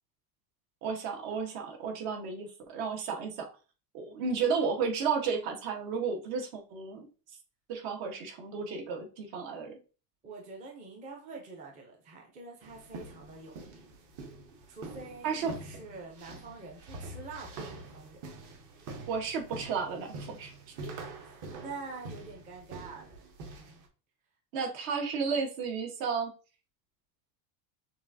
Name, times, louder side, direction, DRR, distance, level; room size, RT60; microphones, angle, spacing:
voice 1, 0.8-3.5 3.9-7.1 7.7-9.8 15.2-15.5 19.1-20.5 20.8-20.9 24.5-26.3, right 5 dB, 65° right, 3 dB, 1.3 m, -33 dB
voice 2, 10.2-13.6 14.7-18.2 21.2-23.2, right 3 dB, 15° right, 0 dB, 0.5 m, -46 dB
sound 1, 12.6-23.9, right 3 dB, 40° right, 0.9 m, -45 dB
6.1 x 2.5 x 2.6 m, 0.35 s
cardioid pair, 170°, 46 cm